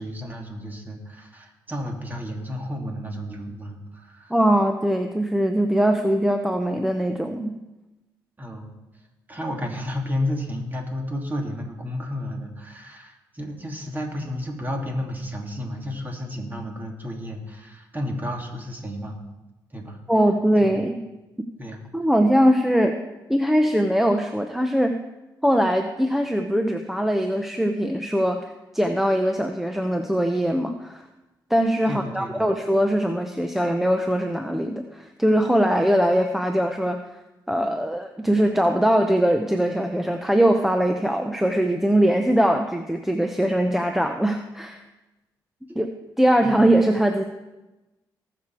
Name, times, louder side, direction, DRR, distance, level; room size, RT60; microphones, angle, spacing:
voice 1, 0.0-4.3 8.4-8.7 9.3-19.2 19.7-20.0 20.6-20.7 21.6-21.8 31.9-32.5 46.4-46.6, left 1 dB, 25° right, 1 dB, 2.8 m, -32 dB
voice 2, 4.3-7.5 20.1-21.0 21.9-23.0 23.3-25.0 25.4-31.1 31.5-37.0 37.5-44.8 45.8-45.9 46.2-47.2, equal, 5° right, 5 dB, 0.8 m, -21 dB
19.0 x 6.9 x 4.7 m, 1.1 s
cardioid pair, 80°, 8 cm